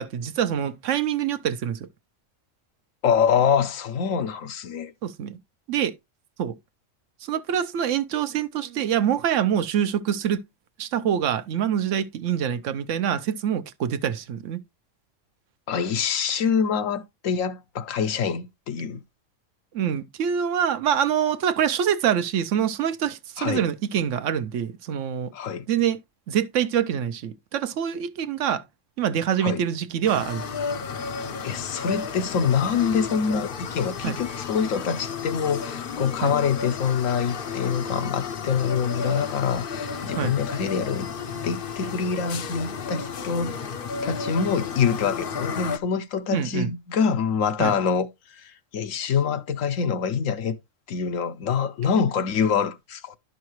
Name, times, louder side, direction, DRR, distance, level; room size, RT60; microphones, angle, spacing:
voice 1, 0.0-1.9 5.0-5.4 5.7-5.9 6.4-6.6 7.2-10.4 10.8-14.6 19.7-25.3 25.7-26.0 26.3-28.6 29.0-30.4 34.0-34.2 36.2-36.4 40.2-40.3 46.3-46.7 47.6-47.8, right 9 dB, 70° right, 1.0 m, -25 dB
voice 2, 3.0-4.9 15.7-19.0 23.4-23.6 25.3-25.7 29.4-29.6 31.4-41.1 41.4-43.6 44.0-50.6 50.9-53.2, left 6 dB, 80° left, 1.1 m, -25 dB
sound 1, 30.0-45.8, left 6 dB, 55° left, 0.7 m, -32 dB
11.5 x 5.6 x 3.0 m
omnidirectional pair, 1.4 m